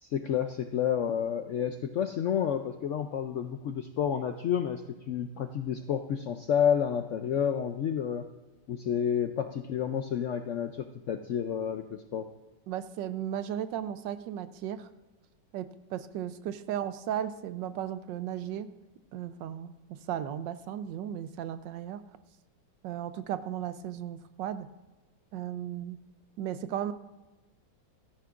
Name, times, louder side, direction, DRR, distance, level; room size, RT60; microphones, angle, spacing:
voice 1, 0.0-8.3 8.7-12.3, left 8 dB, 75° left, 7 dB, 0.7 m, -30 dB
voice 2, 12.7-14.9 15.5-18.7 19.1-22.1 22.8-24.7 25.3-26.0 26.4-26.9, right 10 dB, 85° right, 12 dB, 1.3 m, -35 dB
16.5 x 13.0 x 2.5 m, 1.1 s
omnidirectional pair, 1.9 m